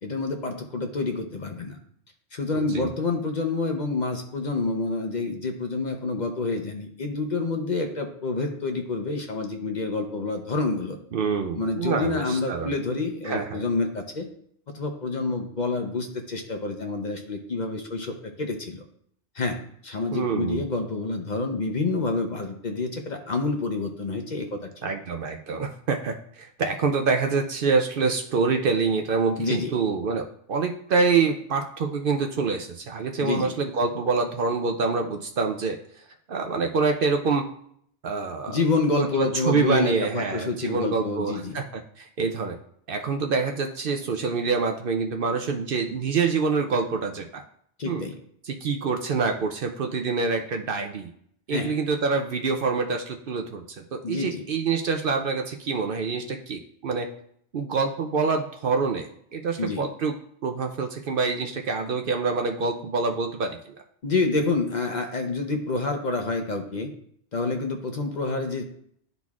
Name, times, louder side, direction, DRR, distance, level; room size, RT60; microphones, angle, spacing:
voice 1, 0.0-1.7 2.3-11.0 11.5-14.3 14.7-18.1 18.4-18.8 19.3-24.7 29.4-29.7 33.2-33.5 38.5-41.6 47.8-48.1 51.5-51.7 54.0-54.4 59.6-59.8 64.0-66.9 67.3-68.6, left 3 dB, 45° left, 4 dB, 0.8 m, -28 dB
voice 2, 2.5-2.9 11.1-12.7 13.2-13.6 20.1-20.7 24.8-35.8 36.3-37.4 38.0-38.6 39.0-41.6 42.0-42.6 42.9-47.4 47.9-48.0 48.5-51.1 51.5-57.1 57.5-59.1 59.3-60.1 60.4-63.6, right 4 dB, 60° right, 5 dB, 0.7 m, -26 dB
12.0 x 4.0 x 2.4 m, 0.66 s
omnidirectional pair, 1.2 m